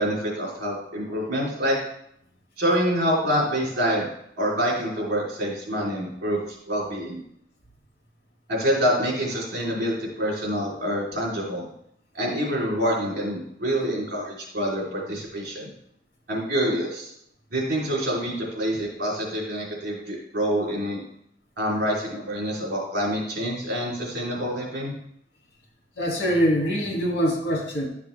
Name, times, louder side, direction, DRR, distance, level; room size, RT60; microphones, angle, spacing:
voice 1, 0.0-1.8 2.6-4.0 4.4-6.4 6.7-7.2 8.5-11.7 12.1-15.7 16.3-17.1 17.5-21.0 21.6-25.0, equal, 60° right, -3 dB, 3.4 m, -26 dB
voice 2, 26.0-27.9, equal, 70° left, -2 dB, 2.5 m, -23 dB
11.5 x 6.0 x 3.3 m, 0.72 s
head